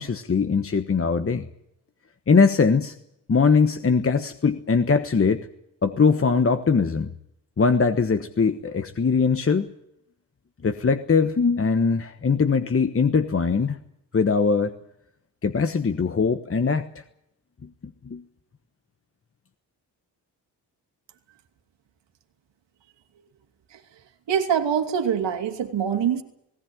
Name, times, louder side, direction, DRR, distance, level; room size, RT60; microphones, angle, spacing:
voice 1, 0.0-1.5 2.3-2.9 3.3-5.5 5.8-7.1 7.6-9.7 10.6-13.8 14.1-14.8 15.4-16.9 17.6-17.7 18.0-18.2, left 5 dB, 30° left, 8 dB, 1.2 m, -21 dB
voice 2, 24.3-26.2, right 8 dB, 85° right, 5 dB, 2.8 m, -24 dB
19.0 x 18.0 x 9.1 m, 0.79 s
cardioid pair, 80°, 42 cm